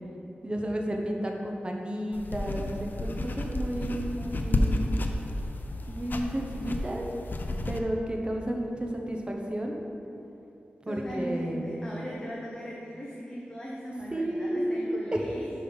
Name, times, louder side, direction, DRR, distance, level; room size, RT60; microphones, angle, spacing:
voice 1, 0.4-4.9 5.9-7.0 7.6-9.8 10.8-11.8 14.1-15.2, right 1 dB, 25° right, 1 dB, 0.9 m, -32 dB
sound 1, 2.1-7.8, left 1 dB, 55° left, 0.5 m, -31 dB
voice 2, 10.9-15.6, equal, 15° left, -4 dB, 0.9 m, -38 dB
5.3 x 5.3 x 5.4 m, 2.9 s
wide cardioid pair, 75°, 4 cm